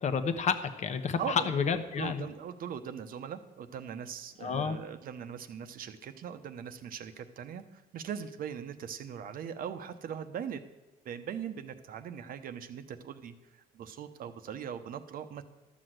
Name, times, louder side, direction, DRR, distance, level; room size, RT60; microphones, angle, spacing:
voice 1, 0.0-2.3 4.4-4.8, left 6 dB, 45° left, 9 dB, 1.0 m, -30 dB
voice 2, 1.2-1.5 2.0-10.6 11.0-15.4, right 8 dB, 55° right, 10 dB, 0.9 m, -40 dB
12.5 x 6.1 x 7.8 m, 1.1 s
cardioid pair, 110°, 17 cm